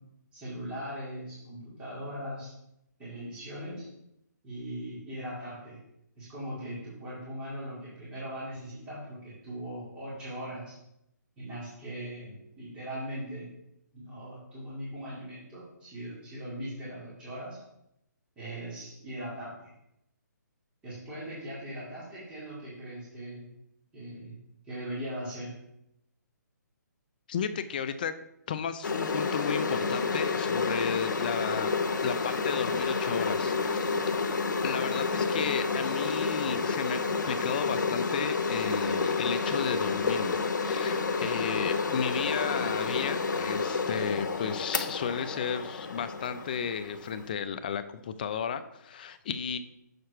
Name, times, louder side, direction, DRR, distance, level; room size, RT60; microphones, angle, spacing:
voice 1, 0.3-2.5 3.0-3.9 4.4-5.8 6.2-10.8 11.4-13.5 13.9-17.6 18.4-19.7 20.8-23.4 23.9-24.4 24.6-25.5, equal, 10° right, -10 dB, 2.2 m, -40 dB
voice 2, 27.3-28.1 28.5-31.7 32.0-34.0 34.6-49.6, left 7 dB, 30° left, 11 dB, 0.4 m, -33 dB
sound 1, 28.8-47.3, left 4 dB, 80° left, 0.9 m, -30 dB
6.6 x 4.3 x 5.7 m, 0.80 s
hypercardioid pair, 165°, 10 cm